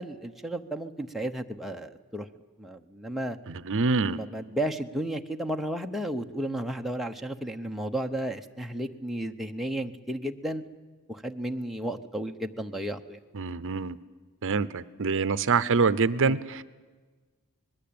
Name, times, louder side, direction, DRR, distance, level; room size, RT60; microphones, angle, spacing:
voice 1, 0.0-2.3 2.6-3.4 4.0-10.6 11.1-13.2 16.2-16.4, right 1 dB, ahead, 3 dB, 0.9 m, -33 dB
voice 2, 3.5-4.2 13.3-14.0 14.4-16.6, right 4 dB, 60° right, 16 dB, 0.7 m, -25 dB
25.5 x 20.5 x 8.7 m, 1.3 s
head